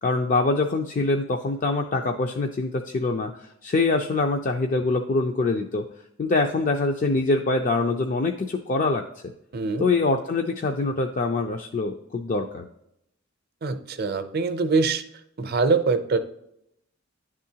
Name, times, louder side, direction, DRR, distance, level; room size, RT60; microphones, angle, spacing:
voice 1, 0.0-5.8 6.2-9.0 9.8-12.7, left 3 dB, 40° left, 4 dB, 0.4 m, -24 dB
voice 2, 9.5-9.9 13.6-15.0 15.4-16.2, right 4 dB, 50° right, 9 dB, 0.6 m, -23 dB
10.5 x 3.7 x 2.8 m, 0.78 s
head